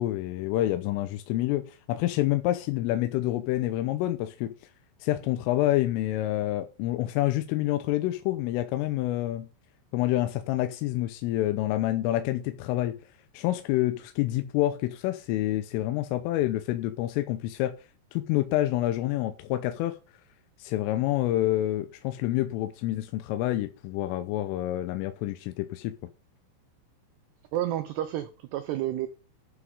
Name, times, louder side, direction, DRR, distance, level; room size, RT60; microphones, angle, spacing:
voice 1, 0.0-4.5 5.0-9.5 9.9-13.0 13.3-17.7 18.1-20.0 20.6-25.9, left 15 dB, 90° left, 3.4 m, -27 dB
voice 2, 27.5-29.1, right 13 dB, 80° right, 2.4 m, -30 dB
11.5 x 6.1 x 5.4 m
omnidirectional pair, 5.7 m